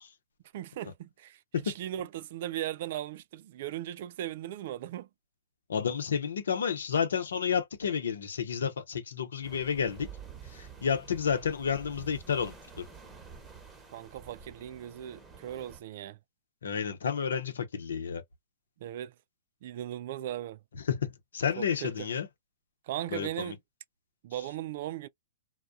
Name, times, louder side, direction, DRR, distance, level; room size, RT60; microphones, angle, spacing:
voice 1, 0.5-5.1 13.9-16.2 18.8-19.1 19.6-20.6 21.6-22.1 22.8-23.6 24.2-25.1, right 12 dB, 55° right, 0.3 m, -38 dB
voice 2, 5.7-10.1 10.5-12.8 16.6-18.2 20.9-21.1 21.3-22.3 23.1-23.5, left 7 dB, 75° left, 0.8 m, -31 dB
sound 1, 9.4-15.8, right 6 dB, 15° right, 1.0 m, -49 dB
2.3 x 2.1 x 2.6 m
hypercardioid pair, 125°, 0 cm